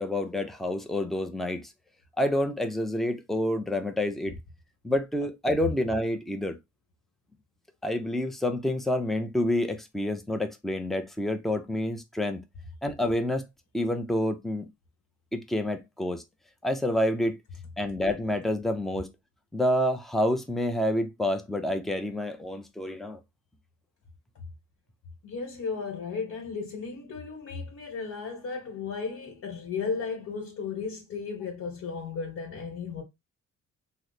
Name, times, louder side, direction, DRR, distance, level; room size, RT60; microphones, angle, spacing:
voice 1, 0.0-1.7 2.2-4.4 4.8-6.6 7.8-12.4 12.8-13.5 13.7-14.7 15.3-16.2 16.6-17.4 17.8-19.1 19.5-23.2, left 1 dB, ahead, 0.5 m, -28 dB
voice 2, 25.2-33.0, left 5 dB, 60° left, 1.3 m, -35 dB
3.1 x 2.1 x 3.9 m
cardioid pair, 90°, 30 cm